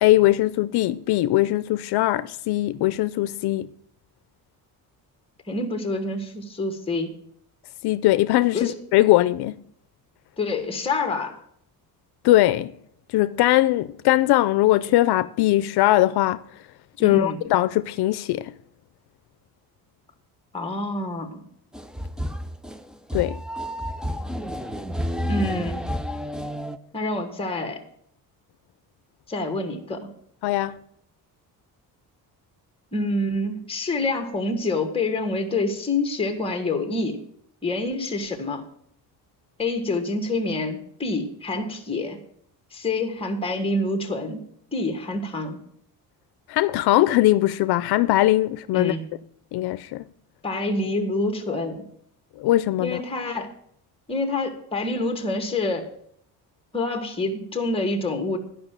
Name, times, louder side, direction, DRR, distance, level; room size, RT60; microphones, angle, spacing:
voice 1, 0.0-3.7 7.8-9.6 12.2-12.7 13.1-16.4 17.0-18.5 23.1-23.4 30.4-30.8 46.5-48.9 49.5-50.0 52.4-53.0, left 16 dB, 80° left, 0.5 m, -20 dB
voice 2, 5.5-7.2 8.5-8.7 10.4-11.4 17.0-17.4 20.5-21.4 25.3-25.9 26.9-27.8 29.3-30.1 32.9-37.2 37.6-38.6 39.6-42.2 42.7-44.4 44.7-45.6 48.7-49.0 50.4-51.8 52.8-53.5 54.1-55.9 56.7-58.4, left 2 dB, 15° left, 1.5 m, -27 dB
sound 1, 21.7-26.8, equal, ahead, 0.3 m, -30 dB
12.0 x 5.7 x 7.4 m
cardioid pair, 150°, 38 cm